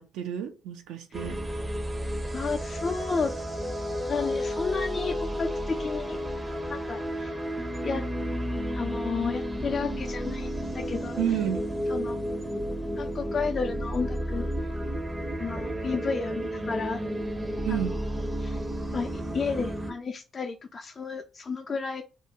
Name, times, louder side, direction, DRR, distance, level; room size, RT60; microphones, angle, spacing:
voice 1, 0.0-1.4 11.2-11.7 17.6-18.0, right 9 dB, 80° right, 6 dB, 0.4 m, -30 dB
sound 1, 1.1-19.9, equal, 25° right, 0.5 m, -32 dB
voice 2, 2.3-3.3 4.1-6.2 6.7-7.4 7.8-8.0 8.7-11.2 11.9-12.2 13.0-14.5 15.4-17.0 17.7-17.8 18.4-18.6 18.9-22.0, left 5 dB, 45° left, 5 dB, 0.3 m, -32 dB
2.4 x 2.2 x 2.7 m, 0.31 s
hypercardioid pair, 50°, 0 cm